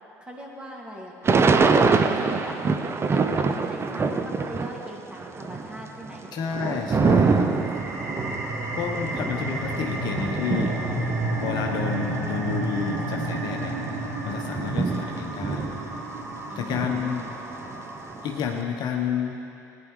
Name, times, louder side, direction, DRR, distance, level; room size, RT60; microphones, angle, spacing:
voice 1, 0.2-1.7 2.2-2.6 3.0-6.3 16.5-17.3, equal, 10° right, -2 dB, 2.4 m, -40 dB
Thunder / Rain, 1.2-4.9 5.2-12.2 12.8-12.9 13.1-16.3 16.7-18.4, right 4 dB, 25° right, 0.7 m, -25 dB
voice 2, 6.3-7.5 8.8-10.8 11.4-13.7 14.2-15.6 16.6-17.2 18.2-19.4, left 7 dB, 50° left, 2 dB, 1.1 m, -30 dB
sound 1, 7.4-18.6, right 1 dB, 80° right, 3.1 m, -31 dB
18.5 x 10.5 x 3.3 m, 2.6 s
figure-of-eight pair, 60°, 9 cm